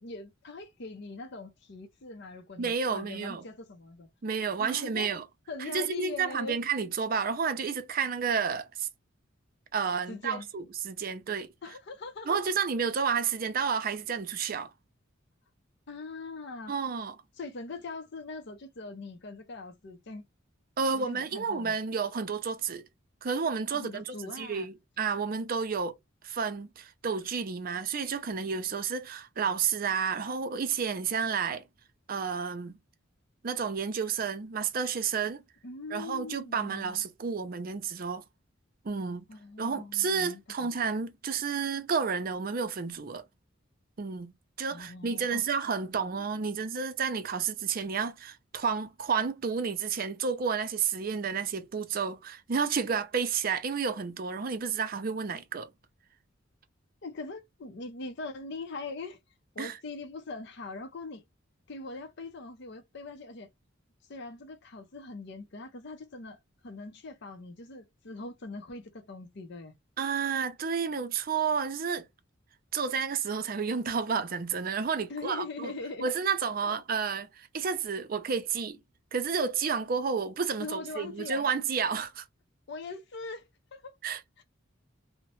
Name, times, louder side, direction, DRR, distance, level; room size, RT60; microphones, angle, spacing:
voice 1, 0.0-4.1 4.6-5.1 5.5-6.6 10.1-10.5 11.6-12.4 15.9-16.7 17.4-20.2 20.8-21.7 23.7-24.7 35.6-37.0 39.3-40.7 44.7-45.4 45.9-46.5 57.0-59.2 59.5-61.2 61.7-63.5 64.1-69.7 75.1-76.1 76.6-76.7 80.6-81.5 82.7-84.0 84.4-84.5, left 3 dB, 55° left, 0.5 m, -42 dB
voice 2, 2.6-3.4 4.2-5.2 5.7-8.9 9.7-11.5 12.3-14.7 16.7-17.1 20.8-22.8 23.2-26.0 26.2-31.6 32.1-32.8 33.4-35.4 35.9-38.2 38.8-39.2 39.6-43.2 44.0-44.3 44.6-55.7 59.6-59.8 70.0-72.1 72.7-75.7 76.0-78.8 79.1-82.2 84.0-84.2, right 6 dB, 45° right, 0.5 m, -31 dB
2.8 x 2.1 x 3.0 m
head